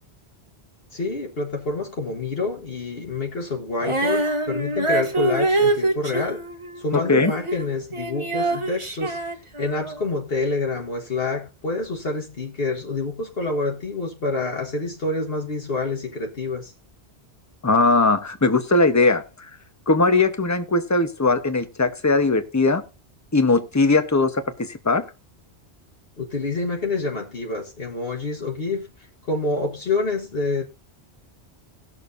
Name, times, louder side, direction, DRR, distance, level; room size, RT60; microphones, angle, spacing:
voice 1, 0.9-6.4 6.8-9.2 9.6-16.7 26.2-28.9 29.3-30.6, left 3 dB, 60° left, 1.5 m, -27 dB
Female singing, 3.8-10.0, right 2 dB, 30° right, 1.2 m, -25 dB
voice 2, 6.9-7.3 17.6-19.2 19.9-22.8 23.3-25.1, left 3 dB, 15° left, 0.9 m, -19 dB
19.0 x 6.6 x 2.6 m
omnidirectional pair, 1.1 m